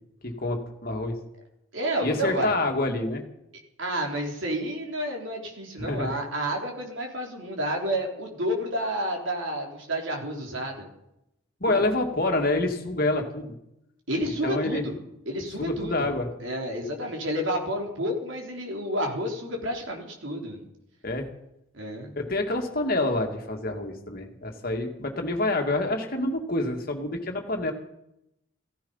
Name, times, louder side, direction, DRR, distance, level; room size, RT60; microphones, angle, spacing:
voice 1, 0.2-1.1 2.0-3.2 5.8-6.1 11.6-13.5 14.4-14.8 15.6-16.3 21.0-21.3 22.2-27.7, left 2 dB, 45° left, 3 dB, 2.1 m, -27 dB
voice 2, 1.7-2.5 3.8-10.9 11.7-11.8 14.1-15.0 15.3-16.1 16.4-20.6 21.7-22.1, equal, 65° right, 1 dB, 3.7 m, -30 dB
15.5 x 15.0 x 5.6 m, 0.83 s
head